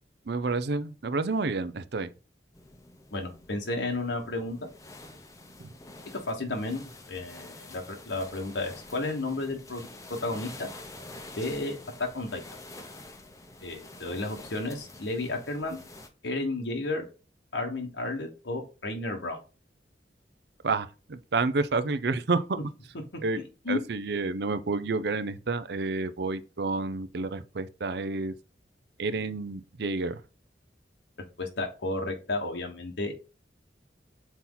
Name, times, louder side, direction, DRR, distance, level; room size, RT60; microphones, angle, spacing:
voice 1, 0.3-2.1 5.6-5.7 20.6-22.6 23.2-23.4 23.7-28.3 29.0-30.2, right 3 dB, 65° right, 0.6 m, -29 dB
sound 1, 2.5-16.1, left 2 dB, 20° left, 0.7 m, -47 dB
voice 2, 3.1-4.7 6.3-10.7 11.4-12.4 13.6-15.8 16.2-17.1 17.5-19.4 23.3-23.8 31.4-33.1, left 2 dB, 85° left, 1.3 m, -32 dB
5.8 x 4.2 x 3.9 m
head